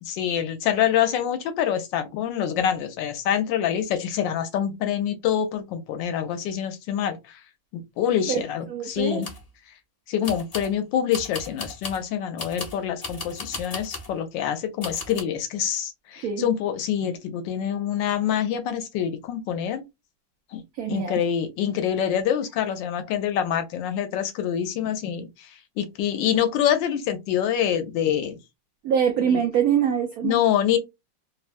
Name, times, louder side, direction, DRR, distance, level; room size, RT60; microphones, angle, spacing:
voice 1, 0.1-7.4 7.7-9.3 10.1-19.8 20.5-20.6 20.9-25.5 25.8-28.4 29.2-29.4 30.2-30.8, left 9 dB, 75° left, 1.2 m, -26 dB
voice 2, 8.7-9.2 13.5-13.6 16.2-16.5 20.7-21.2 28.8-30.4, right 8 dB, 75° right, 0.8 m, -24 dB
sound 1, 8.9-9.5 10.2-10.7 11.1-12.0 12.4-14.1 14.8-15.2, left 3 dB, 35° left, 0.6 m, -36 dB
3.4 x 2.2 x 2.5 m
omnidirectional pair, 2.2 m